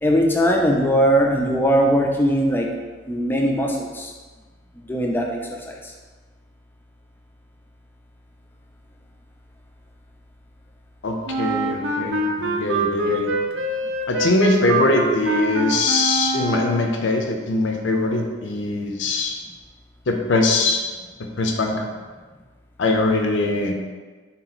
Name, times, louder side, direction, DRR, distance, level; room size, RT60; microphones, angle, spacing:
voice 1, 0.0-2.7 3.1-4.1 4.8-5.9, equal, 10° left, 1 dB, 0.3 m, -20 dB
voice 2, 11.0-13.3 14.1-19.3 20.1-20.8 21.4-21.9 22.8-23.7, left 2 dB, 80° left, 3 dB, 0.5 m, -22 dB
Wind instrument woodwind instrument, 11.3-17.0, right 2 dB, 90° right, 0.5 m, -24 dB
3.9 x 2.9 x 4.0 m, 1.4 s
head